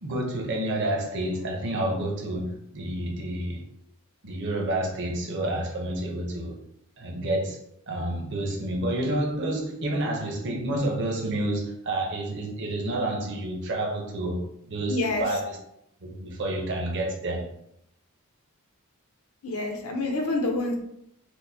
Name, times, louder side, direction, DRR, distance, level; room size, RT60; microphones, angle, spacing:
voice 1, 0.0-3.6 4.2-6.6 7.0-7.6 7.9-15.6 16.0-17.5, right 1 dB, 55° right, 0 dB, 0.8 m, -29 dB
voice 2, 14.9-15.3 19.4-20.8, left 2 dB, 80° left, 2 dB, 0.7 m, -27 dB
4.4 x 2.1 x 2.7 m, 0.76 s
head